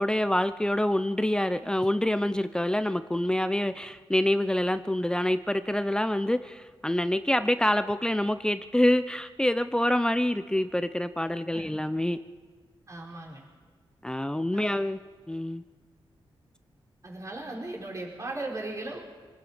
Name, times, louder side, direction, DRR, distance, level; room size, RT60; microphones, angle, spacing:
voice 1, 0.0-12.2 14.0-15.0 15.3-15.6, left 1 dB, 10° left, 11 dB, 0.6 m, -26 dB
voice 2, 12.9-13.4 14.5-14.7 17.0-19.0, right 2 dB, 35° right, -2 dB, 4.9 m, -37 dB
27.0 x 18.5 x 5.1 m, 1.5 s
wide cardioid pair, 100°, 10 cm